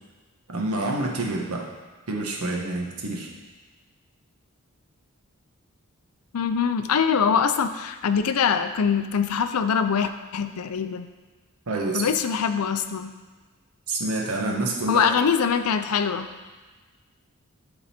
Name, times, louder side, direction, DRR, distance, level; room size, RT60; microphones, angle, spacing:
voice 1, 0.5-1.7 2.1-3.3 11.7-12.0 13.9-15.0, right 2 dB, 75° right, 0 dB, 1.2 m, -27 dB
voice 2, 6.3-11.1 11.9-13.1 14.9-16.3, left 6 dB, 80° left, 9 dB, 0.5 m, -23 dB
11.0 x 3.9 x 4.3 m, 1.3 s
head